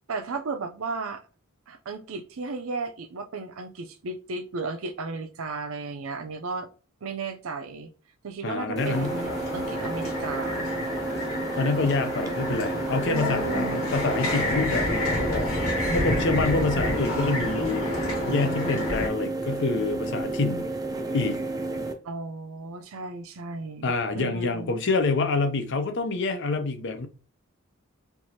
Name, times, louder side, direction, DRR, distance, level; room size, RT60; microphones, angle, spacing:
voice 1, 0.1-1.2 1.7-6.7 7.0-7.9 8.2-10.7 13.0-13.8 22.0-24.7, right 4 dB, 70° right, 0.6 m, -34 dB
voice 2, 8.4-9.1 11.6-15.5 15.9-20.7 21.1-21.4 23.8-27.1, left 3 dB, 55° left, 0.6 m, -27 dB
sound 1, 8.8-21.9, right 2 dB, 15° right, 0.4 m, -31 dB
sound 2, 8.9-19.1, left 1 dB, 85° left, 1.6 m, -29 dB
4.5 x 2.6 x 2.8 m
head